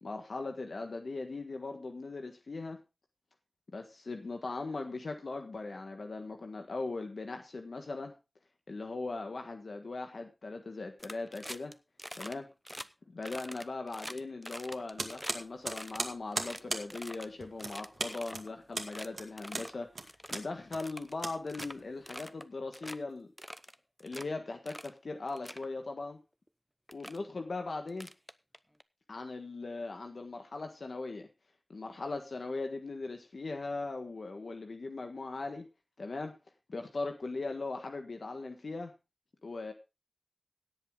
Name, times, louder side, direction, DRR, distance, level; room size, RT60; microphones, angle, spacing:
voice 1, 0.0-2.8 3.7-8.1 8.7-11.7 12.2-12.5 13.1-23.3 24.0-26.2 26.9-28.1 29.1-31.3 31.7-35.7 36.0-36.3 36.7-38.9 39.4-39.7, left 3 dB, 90° left, 5 dB, 1.5 m, -39 dB
sound 1, 11.0-11.7 12.0-12.3 12.6-12.9 13.2-15.3 15.7-17.3 17.6-18.5 18.8-19.1 19.4-19.7 20.1-20.4 20.8-21.7 22.1-22.4 22.7-23.0 23.4-24.2 24.7-24.9 25.3-25.7 26.5-26.6 26.9-27.2 27.9-28.8, equal, 5° left, 0.8 m, -45 dB
sound 2, 15.0-22.2, right 3 dB, 85° right, 2.2 m, -39 dB
17.0 x 8.2 x 3.7 m, 0.27 s
wide cardioid pair, 60°, 0 cm